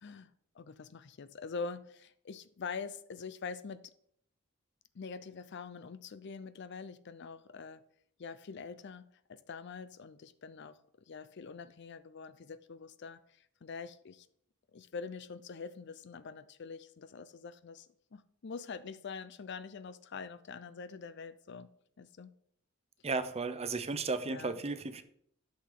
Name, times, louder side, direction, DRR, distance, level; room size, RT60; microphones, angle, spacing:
voice 1, 0.6-3.9 4.9-7.8 8.2-10.8 11.1-13.2 13.6-14.3 14.7-17.9 18.1-21.7 22.0-22.3 24.3-24.6, left 5 dB, 60° left, 0.5 m, -44 dB
voice 2, 23.0-25.0, right 3 dB, 30° right, 0.7 m, -34 dB
11.5 x 6.4 x 3.8 m
head